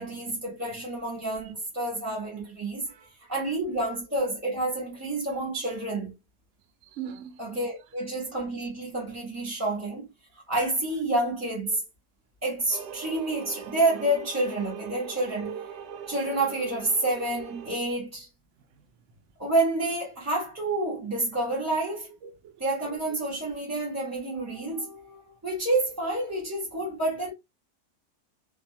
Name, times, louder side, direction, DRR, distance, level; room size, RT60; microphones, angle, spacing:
voice 1, 0.0-2.9 3.3-6.1 7.4-10.1 10.5-11.8 12.4-18.3 19.4-22.1 22.6-27.3, right 2 dB, 15° right, 0.6 m, -29 dB
voice 2, 6.9-7.4 22.2-22.5, right 9 dB, 65° right, 0.7 m, -40 dB
sound 1, 12.7-17.8, right 7 dB, 85° right, 1.2 m, -41 dB
2.6 x 2.3 x 2.6 m
omnidirectional pair, 1.7 m